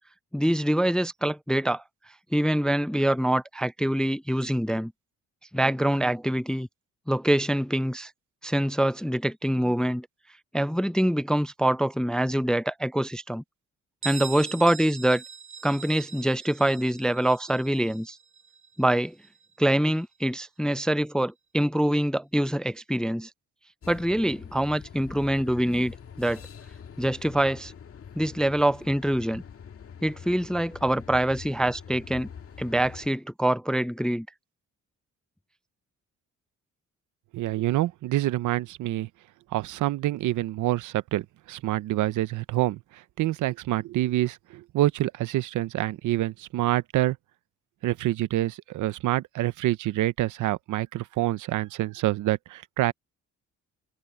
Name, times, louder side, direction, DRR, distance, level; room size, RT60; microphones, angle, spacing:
voice 1, 0.3-1.8 2.3-4.9 5.5-6.7 7.1-8.1 8.4-10.1 10.5-13.4 14.0-15.2 15.6-18.2 18.8-19.1 19.6-23.3 23.9-26.4 27.0-27.7 28.2-29.4 30.0-32.3 32.6-34.3, right 1 dB, 5° left, 0.4 m, -25 dB
Bell, 14.0-19.5, right 6 dB, 40° right, 0.9 m, -41 dB
sound 1, 23.8-33.1, left 7 dB, 50° left, 1.9 m, -45 dB
voice 2, 37.3-39.1 39.5-47.2 47.8-52.9, right 15 dB, 80° right, 0.9 m, -27 dB
cardioid pair, 90°, 30 cm